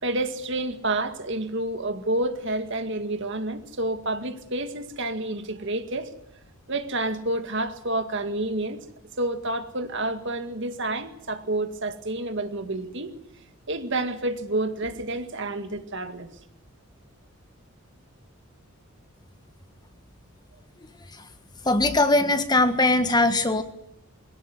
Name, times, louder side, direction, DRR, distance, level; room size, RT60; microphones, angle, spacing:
voice 1, 0.0-6.1 6.7-8.9 9.2-13.1 13.7-16.3, right 2 dB, 55° right, 8 dB, 2.1 m, -29 dB
voice 2, 21.6-23.6, left 2 dB, 20° left, 9 dB, 1.4 m, -20 dB
23.0 x 17.0 x 9.7 m, 0.81 s
head